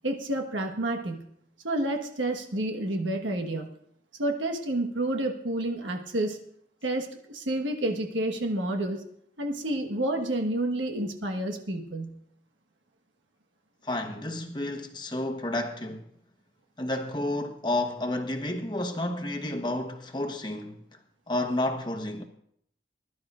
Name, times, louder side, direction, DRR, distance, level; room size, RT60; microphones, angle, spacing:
voice 1, 0.0-1.3 1.6-3.7 4.2-6.4 6.8-9.0 9.4-12.1, right 1 dB, 85° right, 1.4 m, -29 dB
voice 2, 13.8-16.1 16.8-20.8 21.3-22.2, left 1 dB, 25° left, 1.1 m, -31 dB
21.0 x 11.5 x 2.5 m
head